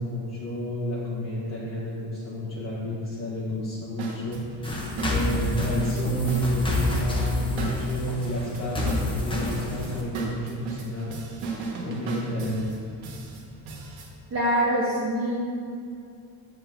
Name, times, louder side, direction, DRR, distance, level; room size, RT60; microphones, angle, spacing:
voice 1, 0.0-11.3 11.8-12.8, equal, 35° left, -6 dB, 1.0 m, -30 dB
sound 1, 4.0-14.1, right 3 dB, 75° right, 1.4 m, -36 dB
sound 2, 4.6-10.0, left 2 dB, 10° left, 0.9 m, -29 dB
voice 2, 14.3-15.4, right 1 dB, 25° right, -7 dB, 1.0 m, -24 dB
7.6 x 6.1 x 3.5 m, 2.4 s
cardioid pair, 155°, 47 cm